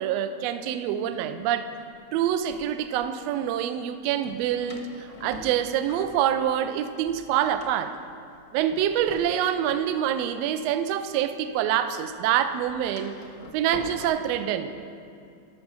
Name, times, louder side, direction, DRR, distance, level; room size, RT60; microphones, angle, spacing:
voice 1, 0.0-1.7 2.1-7.9 8.5-13.1 13.5-14.8, right 10 dB, 80° right, 10 dB, 1.5 m, -26 dB
Door, 1.9-3.0 4.2-6.8 7.0-11.6 11.8-14.1, left 3 dB, 60° left, 0.9 m, -45 dB
13.5 x 6.4 x 6.0 m, 2.4 s
omnidirectional pair, 3.5 m